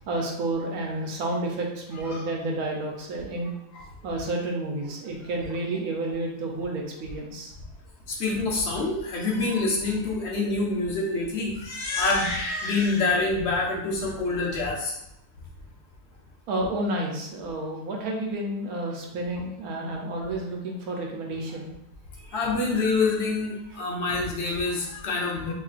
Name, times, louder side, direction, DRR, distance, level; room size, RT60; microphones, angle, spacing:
voice 1, 0.0-3.5 4.0-7.5 16.5-21.7 22.2-22.3, right 2 dB, 75° right, 0 dB, 1.1 m, -30 dB
voice 2, 8.1-14.9 22.3-25.5, left 3 dB, 60° left, -2 dB, 0.8 m, -26 dB
3.6 x 3.0 x 2.4 m, 0.83 s
omnidirectional pair, 1.6 m